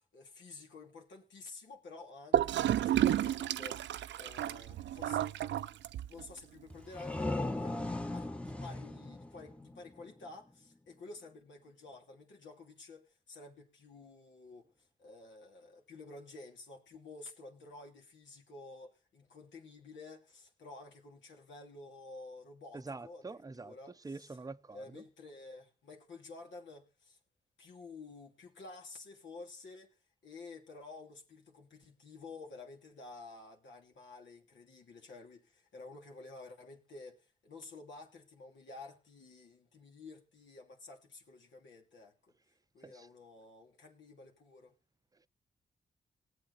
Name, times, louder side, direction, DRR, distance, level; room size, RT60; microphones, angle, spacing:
voice 1, 0.0-5.3 6.1-24.4 24.7-27.2 27.6-42.3 42.7-44.7, left 3 dB, 80° left, 2.9 m, -51 dB
Gurgling / Toilet flush, 2.3-6.3, right 11 dB, 80° right, 0.5 m, -31 dB
sound 1, 6.7-10.3, left 2 dB, 5° left, 1.0 m, -38 dB
voice 2, 22.7-23.8 24.0-25.0 42.8-43.1, right 3 dB, 20° right, 0.6 m, -45 dB
19.5 x 7.7 x 4.1 m
cardioid pair, 60°, 19 cm